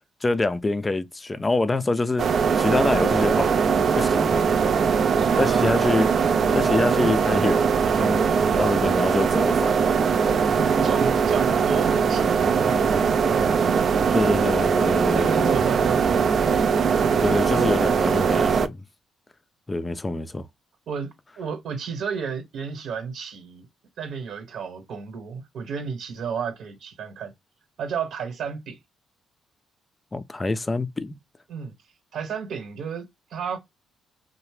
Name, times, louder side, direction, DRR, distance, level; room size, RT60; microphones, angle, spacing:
voice 1, 0.2-3.6 3.9-4.5 5.4-7.6 7.9-8.2 8.6-9.7 14.1-15.6 17.2-18.8 19.7-20.4 30.1-31.2, left 2 dB, 20° left, 0.4 m, -26 dB
sound 1, 2.2-18.7, right 6 dB, 55° right, 0.4 m, -21 dB
voice 2, 5.2-5.7 10.8-13.6 14.9-16.6 17.5-17.8 18.3-18.6 20.9-23.7 24.0-27.3 27.8-28.8 31.5-31.7 32.1-33.6, right 6 dB, 75° right, 1.1 m, -32 dB
2.8 x 2.1 x 3.1 m
cardioid pair, 90°, 0 cm